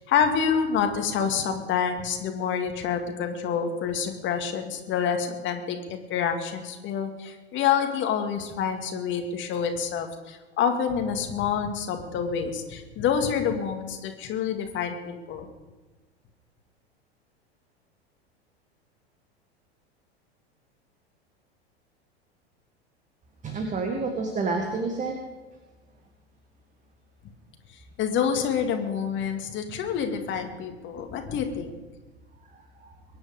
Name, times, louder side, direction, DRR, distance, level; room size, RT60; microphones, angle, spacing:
voice 1, 0.0-15.5 28.0-31.7, left 7 dB, 35° left, 5 dB, 2.2 m, -27 dB
voice 2, 23.4-25.2 32.4-33.0, right 3 dB, 25° right, 3 dB, 1.9 m, -30 dB
23.0 x 10.0 x 5.1 m, 1.2 s
figure-of-eight pair, 85°, 32 cm